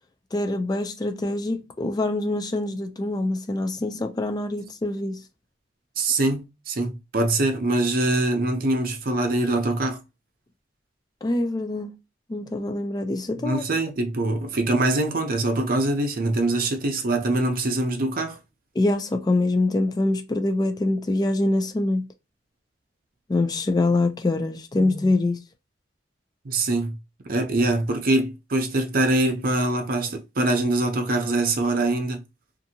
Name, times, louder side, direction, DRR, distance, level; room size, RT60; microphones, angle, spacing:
voice 1, 0.3-5.2 11.2-11.9 12.3-13.6 18.8-22.1 23.3-25.4, left 2 dB, 20° left, 0.3 m, -24 dB
voice 2, 6.0-10.0 13.4-18.4 26.4-27.0 27.3-32.2, right 2 dB, 50° right, 0.6 m, -23 dB
2.7 x 2.5 x 2.7 m
head